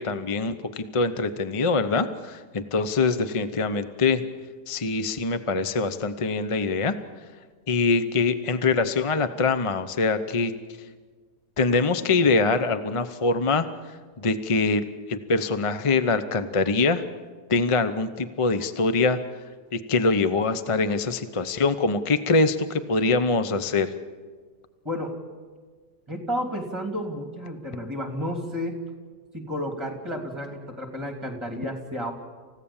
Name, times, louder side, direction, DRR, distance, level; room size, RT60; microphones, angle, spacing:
voice 1, 0.0-4.2 4.7-6.9 7.7-10.5 11.6-13.7 14.2-17.0 17.5-19.2 19.7-23.9, left 3 dB, 35° left, 11 dB, 0.5 m, -24 dB
voice 2, 24.8-25.2 26.1-28.8 29.3-32.1, equal, 15° right, 3 dB, 3.2 m, -31 dB
28.5 x 16.0 x 7.3 m, 1.5 s
omnidirectional pair, 1.8 m